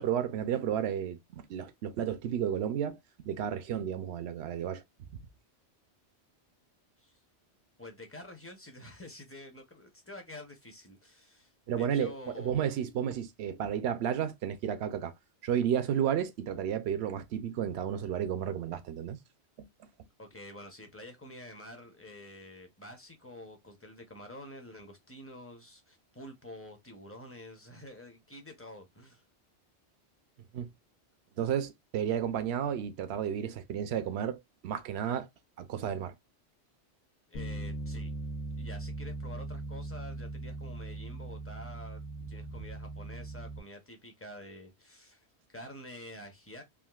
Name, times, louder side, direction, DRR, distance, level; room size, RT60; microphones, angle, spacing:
voice 1, 0.0-4.8 11.7-15.1 15.4-19.2 30.5-30.7 31.4-35.3 35.6-36.1, right 9 dB, 70° right, 0.8 m, -32 dB
voice 2, 7.8-12.8 20.2-29.2 37.3-38.1 38.6-42.0 42.3-46.6, left 1 dB, 15° left, 0.5 m, -48 dB
Bass guitar, 37.3-43.6, right 2 dB, 70° left, 1.0 m, -39 dB
3.5 x 2.5 x 2.3 m
omnidirectional pair, 1.2 m